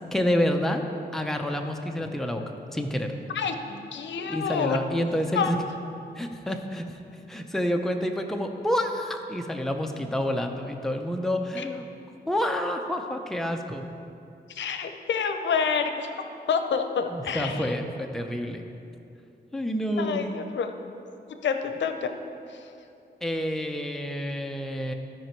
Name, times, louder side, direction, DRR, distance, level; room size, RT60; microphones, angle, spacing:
voice 1, 0.1-0.8 1.1-2.4 2.7-3.1 4.3-5.6 6.2-7.0 7.3-11.9 12.3-13.9 17.1-18.6 19.5-20.3 23.2-24.9, equal, ahead, 3 dB, 0.5 m, -28 dB
voice 2, 3.3-4.8 5.3-5.5 11.6-11.7 14.5-16.1 16.5-17.7 20.0-20.7 21.4-22.1 22.5-22.6, left 6 dB, 90° left, 7 dB, 0.6 m, -28 dB
13.0 x 5.1 x 4.5 m, 2.6 s
wide cardioid pair, 140°, 18 cm